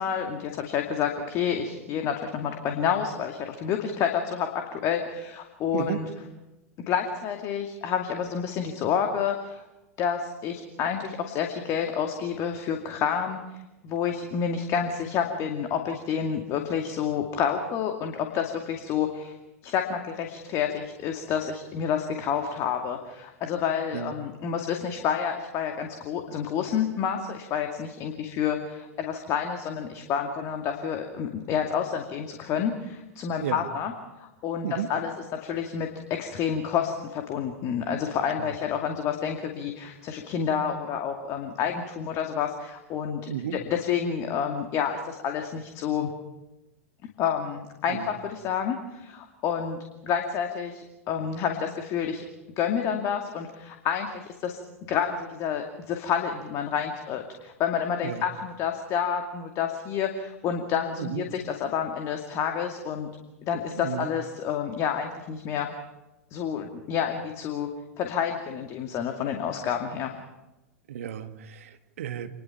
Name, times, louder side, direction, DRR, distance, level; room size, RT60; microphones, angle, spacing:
voice 1, 0.0-6.1 6.9-9.6 10.0-13.4 13.8-19.3 19.6-33.9 34.2-46.1 47.2-52.2 52.6-54.6 54.9-63.1 63.4-65.7 66.3-67.7 68.0-70.1, left 7 dB, 40° left, 4 dB, 2.3 m, -29 dB
voice 2, 43.3-43.6 47.9-48.1 58.0-58.2 61.0-61.2 63.8-64.1 70.9-72.3, right 11 dB, 65° right, 8 dB, 1.7 m, -33 dB
28.0 x 21.0 x 5.8 m, 1.0 s
figure-of-eight pair, 95°, 8 cm